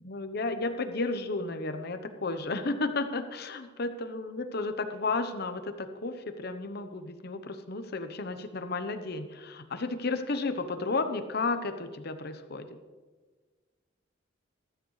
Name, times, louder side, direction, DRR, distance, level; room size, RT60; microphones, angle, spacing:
voice 1, 0.0-12.7, left 3 dB, 55° left, 9 dB, 0.9 m, -33 dB
14.5 x 13.5 x 3.2 m, 1.4 s
head